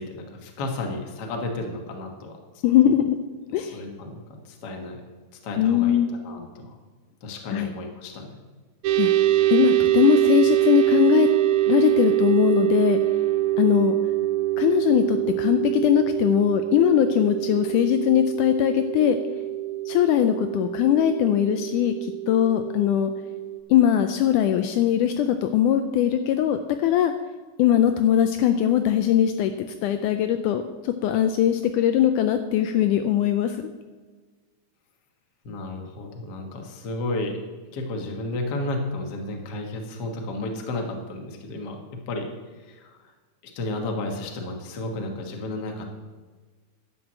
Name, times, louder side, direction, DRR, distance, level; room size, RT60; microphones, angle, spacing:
voice 1, 0.0-2.4 3.6-5.0 5.4-6.8 7.2-8.4 35.4-37.4 37.7-42.3 42.6-43.1 43.4-45.8, left 2 dB, 50° left, 3 dB, 1.2 m, -32 dB
voice 2, 2.6-3.2 3.5-3.8 5.6-6.2 7.5-7.7 9.0-9.1 9.5-11.3 11.6-13.0 13.6-14.0 14.6-19.2 19.9-23.1 23.7-27.1 27.6-29.5 29.8-33.7, left 11 dB, 80° left, 8 dB, 1.9 m, -21 dB
sound 1, 8.8-23.6, right 15 dB, 85° right, 1.7 m, -24 dB
11.0 x 6.3 x 7.3 m, 1.4 s
omnidirectional pair, 3.9 m